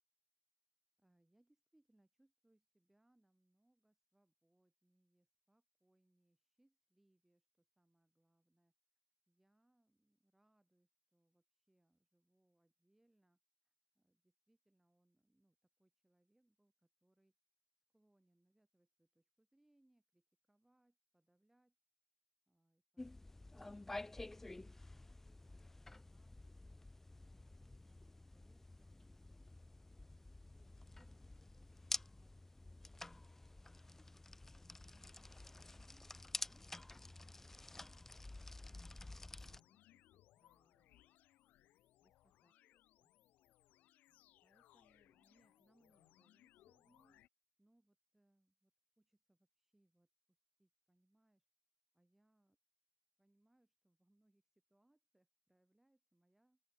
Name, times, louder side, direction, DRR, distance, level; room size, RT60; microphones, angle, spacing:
voice 1, 1.0-8.7 9.3-13.4 13.7-17.3 17.9-21.8 22.5-26.8 27.3-29.8 30.1-31.2 31.5-32.4 32.6-33.7 34.1-35.4 35.7-36.9 37.2-41.0 42.0-43.1 44.4-47.2 47.6-48.7 49.0-51.5 51.9-52.6 53.2-56.6, right 1 dB, 10° right, 3.5 m, -78 dB
sound 1, 23.0-39.6, left 2 dB, 10° left, 0.4 m, -51 dB
sound 2, 39.4-47.3, left 15 dB, 60° left, 0.9 m, -70 dB
open air
hypercardioid pair, 75°, 3 cm